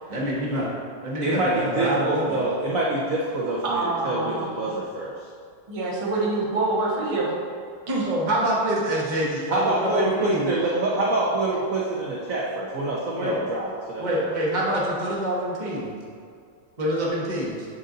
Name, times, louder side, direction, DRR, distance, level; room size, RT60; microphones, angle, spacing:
voice 1, 0.1-0.7 1.0-2.4 8.1-10.5 13.1-13.4 14.0-15.9 16.8-17.7, equal, 35° right, -5 dB, 0.8 m, -26 dB
voice 2, 1.2-5.1 9.5-14.3, right 2 dB, 70° right, -5 dB, 0.8 m, -26 dB
voice 3, 3.6-4.6 5.7-7.3 7.9-8.1, right 2 dB, 50° right, -5 dB, 0.4 m, -26 dB
7.6 x 4.0 x 3.8 m, 2.2 s
omnidirectional pair, 2.3 m